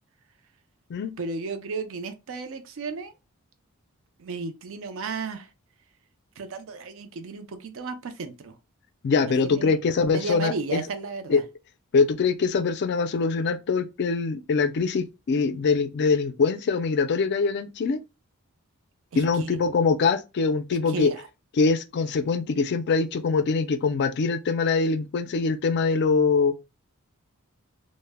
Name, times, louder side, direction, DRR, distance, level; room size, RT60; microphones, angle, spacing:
voice 1, 1.2-3.1 4.2-5.5 6.4-8.5 9.2-9.7 10.1-11.4 19.1-19.6 20.9-21.2, right 4 dB, 65° right, 0.4 m, -34 dB
voice 2, 9.0-10.8 11.3-11.4 11.9-18.0 19.2-21.1 21.6-26.6, left 4 dB, 50° left, 0.3 m, -23 dB
2.1 x 2.0 x 3.3 m
head